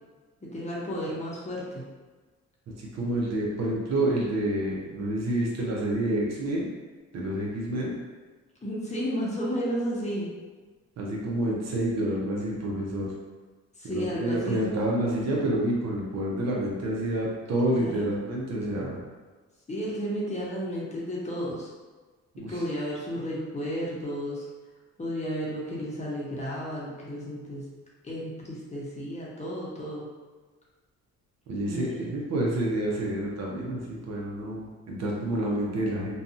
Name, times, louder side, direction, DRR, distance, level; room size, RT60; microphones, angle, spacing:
voice 1, 0.4-1.8 8.6-10.3 13.8-14.6 17.6-18.2 19.7-21.7 22.5-24.5 25.0-27.6 28.0-30.0 31.6-32.1, equal, 25° left, -5 dB, 0.8 m, -33 dB
voice 2, 2.8-6.7 7.1-7.9 11.0-13.1 13.8-19.0 22.4-22.5 31.5-36.2, right 1 dB, 60° right, -3 dB, 0.7 m, -28 dB
2.6 x 2.3 x 2.5 m, 1.3 s
cardioid pair, 90°, 30 cm